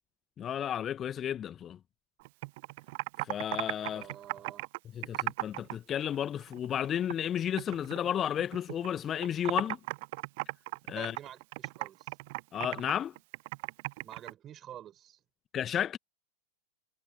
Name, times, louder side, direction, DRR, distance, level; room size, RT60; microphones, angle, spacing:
voice 1, 0.4-1.8 3.2-4.1 4.9-9.8 10.9-11.1 12.5-13.1 15.5-16.0, left 9 dB, 25° left, 1.5 m, -32 dB
Computer keyboard, 2.2-5.7 6.0-7.3 7.6-8.9 9.1-14.3, right 24 dB, 50° right, 0.8 m, -37 dB
voice 2, 3.9-4.7 10.9-12.2 14.0-15.2, right 11 dB, 30° right, 6.5 m, -49 dB
figure-of-eight pair, 90°, 0 cm